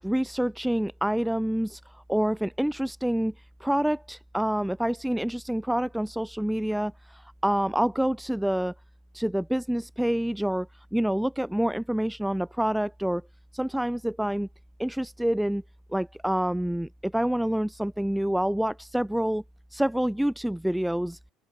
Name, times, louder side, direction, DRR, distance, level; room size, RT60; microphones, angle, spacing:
voice 1, 0.0-3.3 3.6-8.7 9.1-13.2 13.5-14.5 14.8-15.6 15.9-19.4 19.7-21.2, right 1 dB, 5° right, 1.6 m, -27 dB
open air
hypercardioid pair, 75°, 0 cm